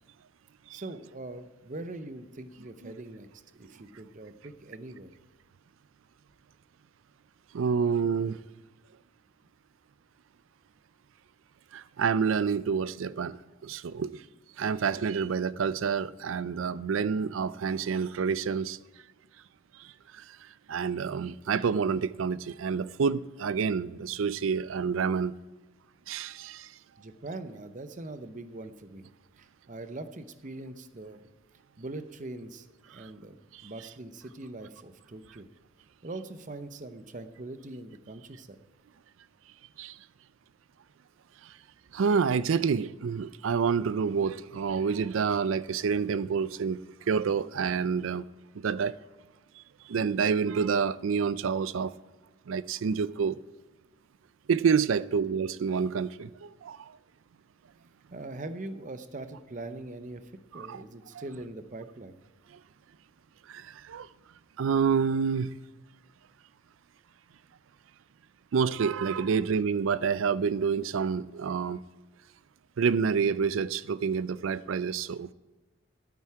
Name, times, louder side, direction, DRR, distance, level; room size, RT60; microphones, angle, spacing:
voice 1, 0.7-3.3 3.5-5.1 27.0-29.1 29.4-31.3 31.8-33.4 33.6-35.5 36.0-38.6 58.1-62.2, right 2 dB, 40° right, 0.7 m, -42 dB
voice 2, 7.5-8.4 11.7-14.2 14.6-18.8 19.8-19.9 20.1-20.2 20.7-25.3 26.1-26.7 33.0-33.1 33.5-33.6 39.8-40.0 41.9-46.8 47.1-48.2 48.6-48.9 49.9-51.9 52.5-53.4 54.5-56.9 60.6-60.8 61.1-61.2 63.5-64.1 64.6-65.6 68.5-71.8 72.8-75.3, right 6 dB, 80° right, 0.4 m, -28 dB
12.0 x 8.9 x 4.7 m
head